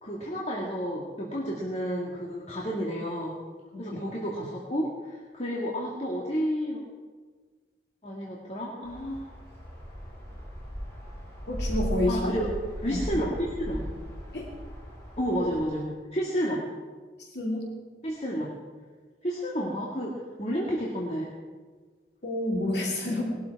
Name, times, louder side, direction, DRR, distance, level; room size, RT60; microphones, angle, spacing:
voice 1, 0.0-3.4 3.8-6.8 8.0-9.3 12.1-12.5 12.8-13.9 15.2-16.7 18.0-18.5 19.2-21.3, equal, 40° left, -3 dB, 1.9 m, -31 dB
voice 2, 3.7-4.0 11.5-12.4 12.9-13.0 14.3-14.5 17.3-17.6 22.2-23.2, left 1 dB, 75° left, -1 dB, 2.7 m, -29 dB
sound 1, 8.8-15.6, equal, 15° left, 6.3 m, -37 dB
20.0 x 12.0 x 4.7 m, 1.4 s
head